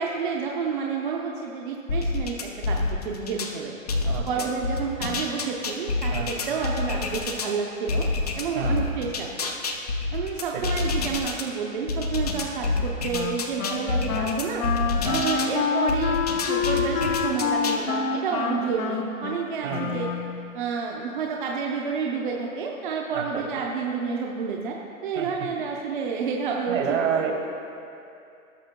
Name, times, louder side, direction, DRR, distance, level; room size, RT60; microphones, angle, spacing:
voice 1, 0.0-2.8 3.0-3.7 4.3-8.0 8.4-9.5 10.1-14.6 15.1-16.2 16.5-20.1 20.5-24.8 25.0-26.8 27.0-27.3, right 5 dB, 35° right, -1 dB, 0.7 m, -30 dB
sound 1, 1.9-3.5 3.9-7.5 7.9-11.4 11.9-15.5 15.9-17.8, left 3 dB, 30° left, 0.4 m, -28 dB
voice 2, 4.0-4.5 6.1-6.4 8.5-8.9 10.5-10.7 15.0-15.3 19.6-20.1 23.1-23.5 25.1-25.3 26.7-27.3, right 7 dB, 65° right, 2 dB, 1.6 m, -29 dB
Wind instrument woodwind instrument, 13.1-20.6, left 6 dB, 75° left, 1.0 m, -27 dB
17.0 x 6.5 x 2.2 m, 2.6 s
hypercardioid pair, 155°, 42 cm